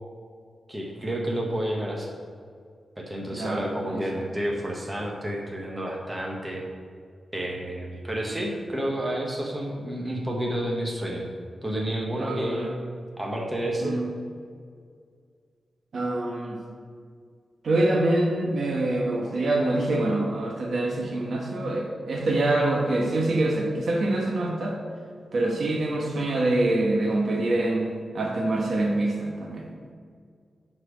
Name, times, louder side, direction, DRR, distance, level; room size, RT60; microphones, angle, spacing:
voice 1, 0.7-2.1 3.0-6.6 7.3-11.3 11.6-12.8 13.2-14.0, right 1 dB, 15° right, -1 dB, 1.2 m, -30 dB
voice 2, 3.3-4.2 12.1-12.7 13.8-14.0 15.9-16.6 17.6-24.8 25.3-29.6, right 2 dB, 55° right, 0 dB, 1.2 m, -25 dB
10.5 x 4.4 x 5.0 m, 2.1 s
wide cardioid pair, 150°, 0 cm